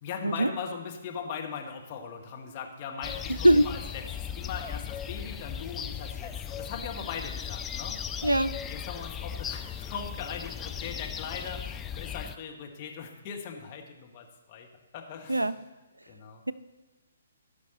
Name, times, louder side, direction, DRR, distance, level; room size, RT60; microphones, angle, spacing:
voice 1, 0.0-8.0 8.6-14.7 14.9-15.5 16.1-16.4, left 6 dB, 30° left, 2 dB, 1.5 m, -39 dB
sound 1, 3.0-12.4, left 8 dB, 15° left, 0.4 m, -37 dB
voice 2, 3.3-3.7 8.2-8.6 15.3-15.6, right 1 dB, 80° right, 15 dB, 0.4 m, -22 dB
16.5 x 5.7 x 4.2 m, 1.1 s
figure-of-eight pair, 130°, 0 cm